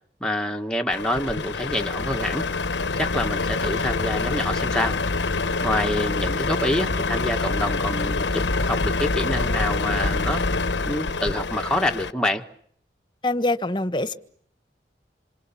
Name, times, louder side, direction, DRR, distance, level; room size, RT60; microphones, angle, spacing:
voice 1, 0.2-2.5 3.0-5.0 5.6-10.4 10.8-12.4, left 1 dB, 5° left, 1.5 m, -27 dB
Truck, 0.9-12.1, left 3 dB, 85° left, 1.1 m, -26 dB
voice 2, 13.2-14.1, left 2 dB, 25° left, 1.4 m, -24 dB
27.5 x 27.0 x 7.2 m
head